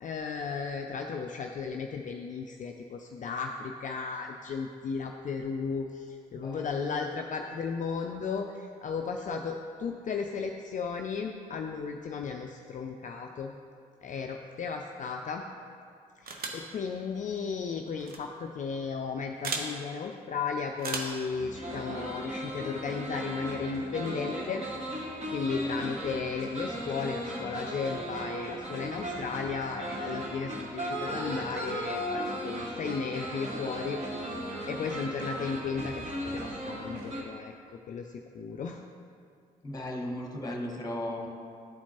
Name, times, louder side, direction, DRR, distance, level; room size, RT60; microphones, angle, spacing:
voice 1, 0.0-13.6 14.0-15.4 16.2-24.6 25.3-34.0 34.7-38.8, left 5 dB, 40° left, 3 dB, 0.4 m, -35 dB
voice 2, 6.4-7.0 39.6-41.3, left 1 dB, 20° left, 0 dB, 1.3 m, -36 dB
sound 1, 16.3-16.7 18.0-18.2 19.4-19.7 20.8-21.2, right 4 dB, 50° right, 0.8 m, -34 dB
sound 2, 21.3-37.2, equal, 35° right, 1.6 m, -36 dB
11.0 x 4.3 x 2.9 m, 2.4 s
hypercardioid pair, 45°, 19 cm